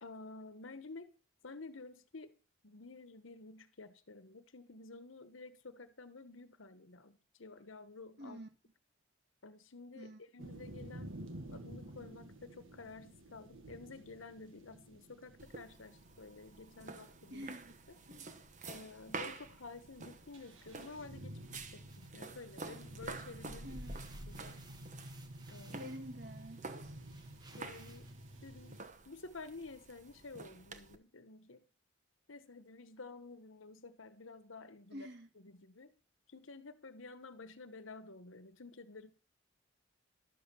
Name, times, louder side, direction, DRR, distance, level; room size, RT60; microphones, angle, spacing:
voice 1, 0.0-1.1 1.4-2.3 2.6-8.4 9.4-11.2 11.5-17.5 18.7-23.8 24.3-24.6 25.5-25.9 27.6-28.1 28.4-31.6 32.3-35.1 35.4-35.9 36.3-39.1, left 3 dB, 80° left, 1.1 m, -51 dB
voice 2, 8.2-8.5 9.9-10.2 17.3-17.8 18.1-18.3 23.6-24.0 25.7-26.7 34.9-35.3, equal, 55° right, 1.6 m, -48 dB
sound 1, 10.4-28.8, right 1 dB, 80° right, 1.6 m, -52 dB
sound 2, 15.4-31.0, right 3 dB, 40° right, 1.1 m, -49 dB
sound 3, 21.9-23.1 23.4-28.1, right 3 dB, 20° right, 1.1 m, -63 dB
12.0 x 7.3 x 6.9 m
head